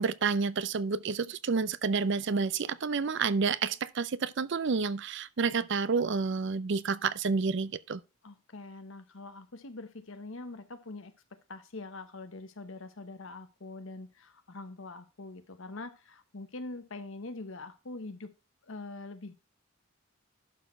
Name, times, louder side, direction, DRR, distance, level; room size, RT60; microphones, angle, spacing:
voice 1, 0.0-8.0, right 5 dB, 55° right, 0.5 m, -29 dB
voice 2, 8.2-18.3 18.6-19.3, left 2 dB, 70° left, 1.0 m, -44 dB
11.5 x 4.4 x 4.4 m
head